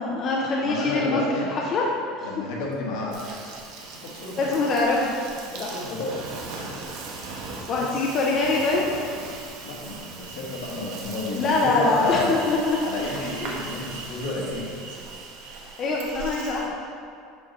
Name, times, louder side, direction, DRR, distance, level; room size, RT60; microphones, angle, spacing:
voice 1, 0.0-1.2 1.5-1.8 2.2-2.3 4.4-5.1 5.6-5.9 7.7-8.8 11.3-12.8 15.8-16.7, left 3 dB, 30° left, -2 dB, 0.5 m, -24 dB
voice 2, 0.6-1.5 2.2-3.2 4.0-4.6 5.5-6.1 7.8-8.0 9.6-12.4 12.8-14.7, left 2 dB, 70° left, -3 dB, 1.4 m, -31 dB
Insect, 3.1-16.7, right 3 dB, 60° right, 1.0 m, -38 dB
7.1 x 3.8 x 4.1 m, 2.4 s
cardioid pair, 160°, 0 cm